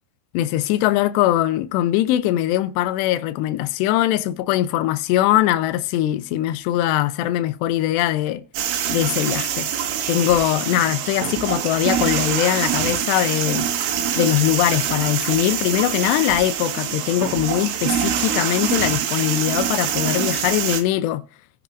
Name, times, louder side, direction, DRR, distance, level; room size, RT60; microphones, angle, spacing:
voice 1, 0.3-8.4 8.9-9.7 10.1-13.7 14.2-21.2, left 13 dB, 80° left, 2.5 m, -21 dB
sound 1, 8.6-20.8, right 9 dB, 85° right, 4.1 m, -24 dB
19.0 x 10.5 x 2.5 m
omnidirectional pair, 5.7 m